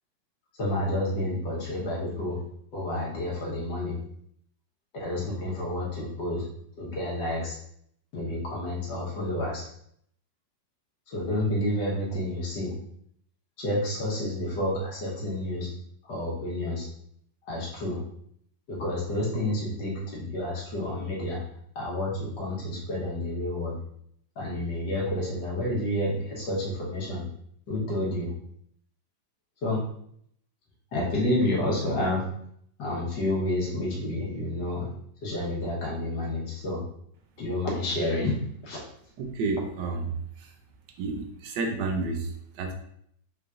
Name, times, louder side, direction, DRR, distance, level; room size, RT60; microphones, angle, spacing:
voice 1, 0.6-2.4 2.7-4.0 4.9-6.4 6.8-7.6 8.1-9.7 11.1-12.7 13.6-15.7 16.0-16.9 17.5-18.0 18.7-21.4 21.8-23.8 24.4-27.2 27.7-28.3 29.6-29.8 30.9-32.2 32.8-34.9 35.2-36.8 37.4-38.4 38.6-38.8, left 1 dB, 70° left, -4 dB, 1.8 m, -29 dB
voice 2, 39.2-40.5 41.0-42.7, right 3 dB, 75° right, 4 dB, 1.2 m, -31 dB
4.6 x 3.5 x 2.4 m, 0.69 s
omnidirectional pair, 1.9 m